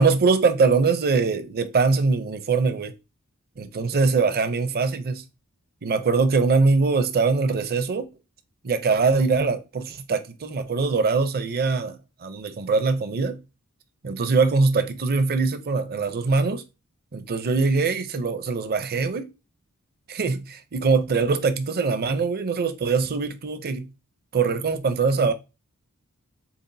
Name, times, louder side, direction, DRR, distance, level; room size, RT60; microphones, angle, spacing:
voice 1, 0.0-2.9 3.6-5.2 5.8-8.1 8.6-13.4 14.0-16.6 17.1-19.3 20.1-23.9 24.3-25.3, right 4 dB, 45° right, 0.6 m, -22 dB
6.9 x 2.4 x 2.7 m
head